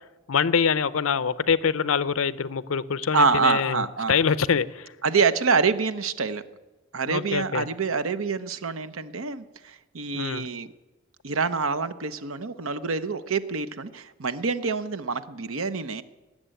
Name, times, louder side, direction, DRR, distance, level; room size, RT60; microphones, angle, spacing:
voice 1, 0.3-4.9 7.1-7.7 10.1-10.5, left 6 dB, 85° left, 16 dB, 0.6 m, -25 dB
voice 2, 3.1-4.2 5.0-6.4 6.9-10.7 11.2-16.0, right 5 dB, 85° right, 11 dB, 0.8 m, -26 dB
19.5 x 7.5 x 9.0 m, 1.2 s
head